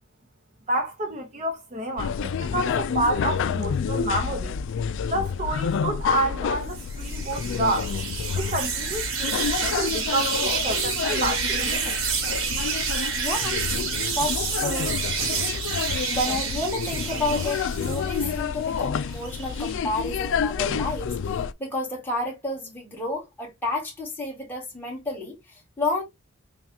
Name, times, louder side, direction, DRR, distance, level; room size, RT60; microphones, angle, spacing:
voice 1, 0.7-4.6 5.0-7.9 8.3-12.0, right 2 dB, 35° right, 0.7 m, -29 dB
sound 1, 2.0-21.5, left 6 dB, 60° left, 0.3 m, -29 dB
sound 2, 6.7-18.3 18.8-19.7, right 6 dB, 70° right, 1.3 m, -29 dB
voice 2, 13.1-13.6 14.1-14.9 16.1-26.0, left 2 dB, 10° left, 1.6 m, -30 dB
5.8 x 2.3 x 2.8 m
head